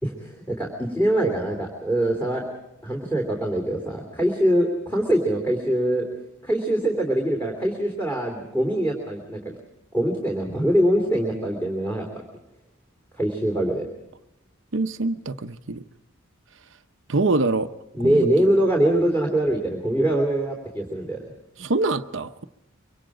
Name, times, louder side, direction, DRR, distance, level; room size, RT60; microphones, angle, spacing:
voice 1, 0.0-2.5 2.8-6.1 6.4-9.5 9.9-12.2 13.1-13.8 17.9-21.2, right 1 dB, 10° left, 3.2 m, -23 dB
voice 2, 14.7-15.8 17.1-17.7 18.0-18.3 21.6-22.4, right 3 dB, 60° right, 0.8 m, -24 dB
24.5 x 24.5 x 5.0 m
head